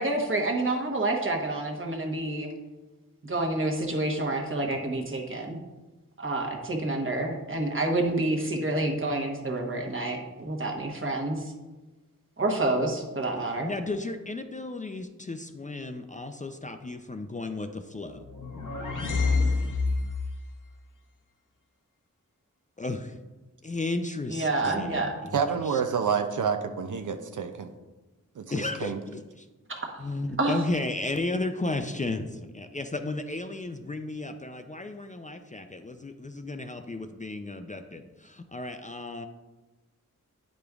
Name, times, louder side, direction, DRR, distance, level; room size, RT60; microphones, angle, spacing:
voice 1, 0.0-2.5 3.2-5.6 6.2-11.5 12.4-13.7 24.3-25.2 29.7-29.9 30.4-30.6, right 2 dB, 40° right, 1 dB, 1.1 m, -28 dB
voice 2, 13.6-18.2 22.8-23.2 23.6-25.4 25.7-25.8 28.5-29.5 30.0-39.3, left 2 dB, 25° left, 6 dB, 0.4 m, -34 dB
sound 1, 18.1-20.4, left 4 dB, 80° left, 0.9 m, -27 dB
voice 3, 25.3-27.7 28.4-29.0, right 6 dB, 80° right, 6 dB, 0.5 m, -28 dB
9.0 x 5.0 x 2.4 m, 1.1 s
wide cardioid pair, 65°, 31 cm